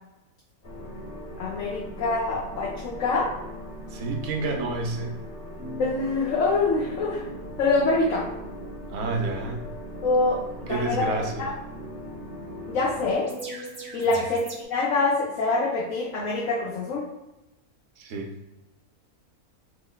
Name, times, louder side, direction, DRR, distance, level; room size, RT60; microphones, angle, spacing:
sound 1, 0.6-13.2, equal, 50° left, 1.3 m, -39 dB
voice 1, 1.4-3.3 5.8-7.2 7.6-8.2 10.0-11.5 12.7-13.3 13.9-17.0, left 3 dB, 65° left, -5 dB, 1.0 m, -25 dB
voice 2, 3.9-5.1 8.9-9.7 10.7-11.5 14.0-14.2 18.0-18.3, right 3 dB, 65° right, 1 dB, 0.9 m, -29 dB
sound 2, 5.6-14.6, right 2 dB, 20° right, 0.5 m, -44 dB
3.0 x 2.0 x 3.8 m, 0.95 s
omnidirectional pair, 1.5 m